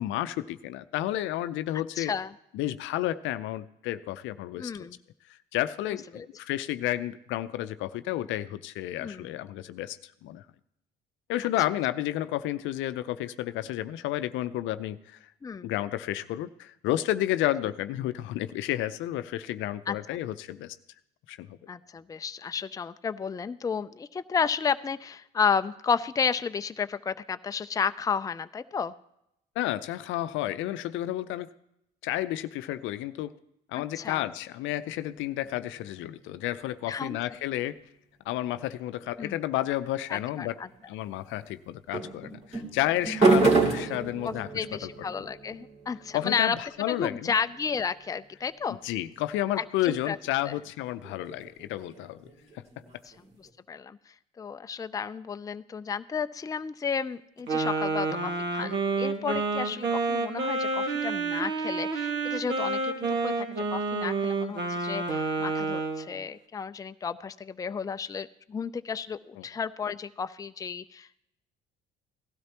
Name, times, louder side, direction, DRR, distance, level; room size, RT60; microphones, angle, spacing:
voice 1, 0.0-2.1 2.5-4.7 5.5-10.4 11.3-15.2 15.6-20.8 21.3-21.6 29.6-31.5 32.0-33.3 33.7-37.8 38.3-40.5 40.9-44.9 46.1-47.4 48.8-52.3 52.5-52.6 69.4-69.5, left 14 dB, 70° left, 13 dB, 0.6 m, -31 dB
voice 2, 2.0-2.3 4.6-5.0 6.1-6.3 9.0-9.3 15.4-15.7 19.9-20.2 21.7-28.9 33.7-34.3 36.9-37.2 39.2-39.4 40.1-40.7 43.7-43.8 44.2-46.6 46.9-48.8 49.6-50.2 50.4-50.6 53.1-53.2 53.4-71.2, left 6 dB, 15° left, 11 dB, 0.4 m, -32 dB
sound 1, 34.9-36.7 40.3-40.8 41.9-48.7 50.5-53.5, right 3 dB, 30° right, 2.7 m, -30 dB
Wind instrument woodwind instrument, 57.5-66.1, right 3 dB, 60° right, 1.7 m, -29 dB
17.5 x 12.5 x 2.9 m, 0.81 s
supercardioid pair, 70°, 21 cm